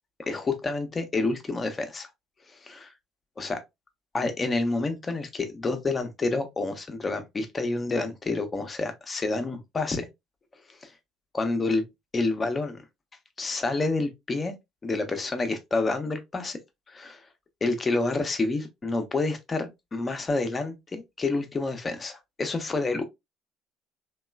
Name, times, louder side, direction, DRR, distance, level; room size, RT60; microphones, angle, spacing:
voice 1, 0.3-2.1 2.6-2.9 3.4-3.6 4.1-10.1 10.8-10.9 11.3-11.8 12.1-12.8 13.4-14.6 14.8-16.6 16.9-17.2 17.6-23.0, left 3 dB, 30° left, 0.7 m, -28 dB
2.9 x 2.3 x 2.2 m
hypercardioid pair, 60°, 0 cm